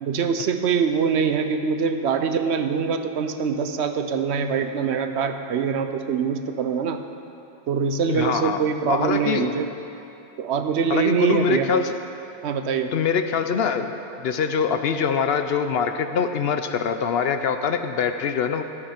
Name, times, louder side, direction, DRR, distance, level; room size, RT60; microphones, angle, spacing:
voice 1, 0.0-7.0 7.7-9.7 10.4-11.7 12.4-12.9, right 6 dB, 70° right, 7 dB, 0.9 m, -24 dB
voice 2, 8.1-8.6 8.9-9.5 10.9-12.0 12.9-18.6, left 6 dB, 65° left, 8 dB, 0.7 m, -24 dB
13.5 x 7.9 x 5.8 m, 2.7 s
omnidirectional pair, 1.2 m